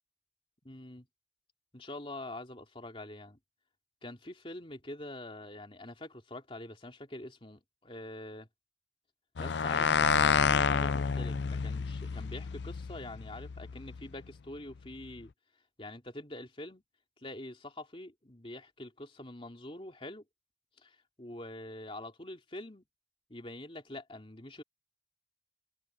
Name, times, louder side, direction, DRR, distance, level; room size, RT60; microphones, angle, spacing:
voice 1, 0.6-1.1 1.7-3.4 4.0-8.5 9.4-15.3 15.8-16.8 17.2-20.2 20.8-22.8 23.3-24.6, left 1 dB, 30° left, 2.8 m, -45 dB
sound 1, 9.4-14.0, left 6 dB, 65° left, 0.5 m, -29 dB
head